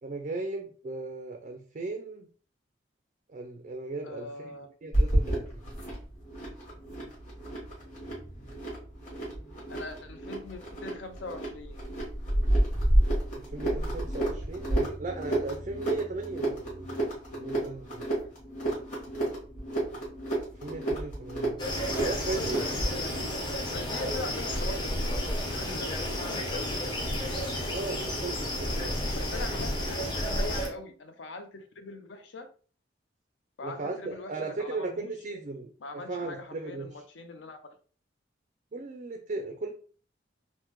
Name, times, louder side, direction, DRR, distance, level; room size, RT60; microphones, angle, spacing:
voice 1, 0.0-2.3 3.3-4.5 4.8-5.6 13.3-16.9 17.3-18.1 20.6-21.6 21.9-22.7 24.0-24.3 27.7-29.0 33.6-37.0 38.7-39.7, right 3 dB, 40° right, 4 dB, 0.3 m, -37 dB
voice 2, 4.0-4.7 9.7-11.8 19.2-19.3 22.3-23.3 23.7-27.0 29.2-32.5 33.6-34.3 34.6-35.1 35.8-37.6, left 3 dB, 75° left, 7 dB, 0.5 m, -42 dB
sound 1, 4.9-23.0, right 1 dB, 40° left, 1.4 m, -30 dB
sound 2, 21.6-30.7, left 1 dB, 25° left, 0.5 m, -31 dB
3.4 x 2.1 x 2.9 m, 0.42 s
head